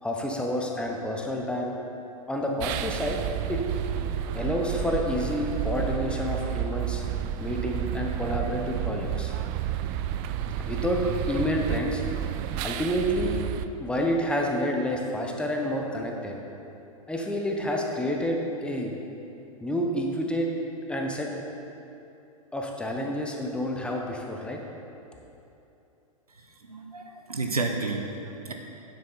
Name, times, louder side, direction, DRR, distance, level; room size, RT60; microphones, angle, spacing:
voice 1, 0.0-1.7 2.3-3.2 3.5-3.6 4.3-7.0 7.4-9.3 10.6-11.0 11.3-12.0 12.6-13.4 13.8-16.4 17.1-18.9 19.6-20.5 20.9-21.3 22.5-24.6, equal, 5° left, 0 dB, 0.9 m, -29 dB
sound 1, 2.6-13.7, right 10 dB, 35° right, 0.3 m, -31 dB
voice 2, 26.7-28.5, right 3 dB, 85° right, 3 dB, 1.0 m, -31 dB
9.3 x 7.7 x 4.1 m, 2.8 s
figure-of-eight pair, 100°, 19 cm